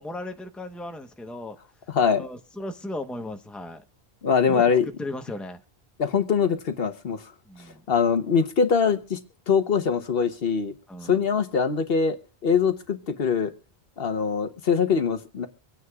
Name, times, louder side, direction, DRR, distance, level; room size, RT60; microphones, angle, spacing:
voice 1, 0.0-1.6 2.2-3.8 4.5-5.6 7.4-7.8 10.9-11.2, left 1 dB, ahead, 0.9 m, -36 dB
voice 2, 1.9-2.2 4.2-4.9 6.0-7.2 7.9-9.2 9.5-10.7 11.0-12.2 12.4-13.5 14.0-15.5, left 6 dB, 65° left, 1.1 m, -23 dB
24.5 x 9.5 x 2.4 m
omnidirectional pair, 1.1 m